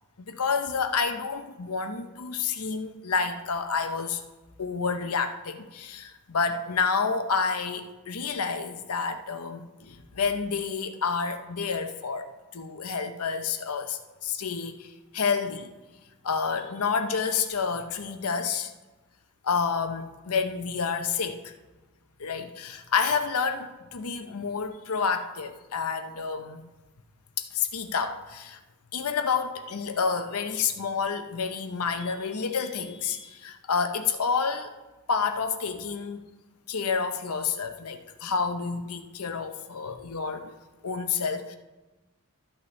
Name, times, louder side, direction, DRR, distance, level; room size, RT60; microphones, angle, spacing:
voice 1, 0.3-4.2 4.6-15.7 16.2-18.7 19.4-21.5 22.2-26.7 27.4-28.6 28.9-34.7 35.1-36.2 36.7-40.5 40.8-41.6, left 5 dB, 80° left, 8 dB, 0.8 m, -29 dB
13.5 x 8.4 x 3.2 m, 1.1 s
head